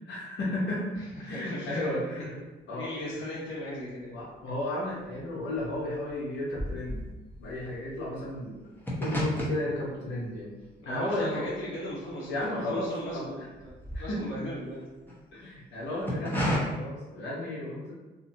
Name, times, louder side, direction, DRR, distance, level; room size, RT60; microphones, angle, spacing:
voice 1, 0.1-2.3 2.7-2.9 4.1-7.0 7.4-8.6 9.0-10.5 10.8-11.5 12.3-13.5 13.9-14.2 15.3-17.9, left 1 dB, 65° left, -7 dB, 0.8 m, -33 dB
voice 2, 0.9-2.2 2.7-4.2 10.8-14.8, equal, 90° left, -6 dB, 1.1 m, -38 dB
sound 1, 3.8-4.5 4.8-13.1 13.4-15.2 15.8-16.6, equal, 10° left, 0.8 m, -35 dB
2.7 x 2.5 x 2.7 m, 1.1 s
cardioid pair, 90°, 20 cm